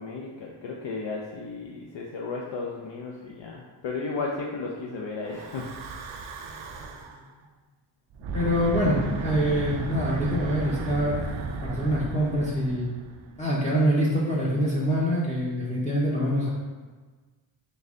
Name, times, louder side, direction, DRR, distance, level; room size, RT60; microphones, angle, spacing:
voice 1, 0.0-5.7, left 3 dB, 65° left, -2 dB, 0.6 m, -34 dB
Breathing / Wind, 5.3-7.2 8.1-13.5, right 3 dB, 70° right, 0.5 m, -34 dB
voice 2, 8.3-11.2 11.6-12.9 13.3-16.5, equal, 15° left, -6 dB, 0.6 m, -25 dB
3.9 x 2.7 x 3.5 m, 1.4 s
wide cardioid pair, 100°, 50 cm